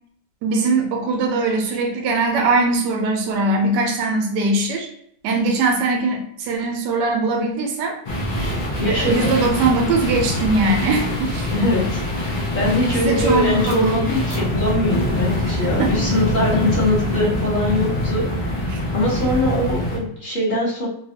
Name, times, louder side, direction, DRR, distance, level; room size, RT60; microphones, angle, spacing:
voice 1, 0.4-4.9 5.2-7.9 8.8-11.5 12.9-14.0 14.3-14.4 15.4-15.9 18.7-18.8, right 3 dB, 80° right, 2 dB, 1.2 m, -21 dB
sound 1, 8.0-20.0, left 1 dB, 85° left, 0.4 m, -24 dB
voice 2, 8.8-9.3 11.5-20.9, left 1 dB, 35° left, -6 dB, 1.0 m, -22 dB
3.2 x 2.3 x 2.8 m, 0.69 s
omnidirectional pair, 1.8 m